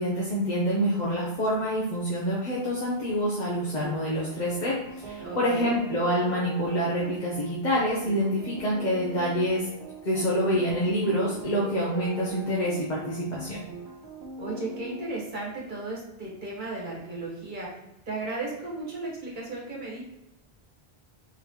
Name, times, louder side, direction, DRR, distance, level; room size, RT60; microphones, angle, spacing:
voice 1, 0.0-9.7 10.0-13.6, equal, 50° left, -6 dB, 0.9 m, -27 dB
sound 1, 3.8-15.1, right 4 dB, 85° right, 1.0 m, -41 dB
voice 2, 5.2-5.7 14.4-17.7 18.1-20.0, right 2 dB, 50° right, -4 dB, 1.4 m, -35 dB
4.0 x 3.6 x 2.9 m, 0.90 s
omnidirectional pair, 1.0 m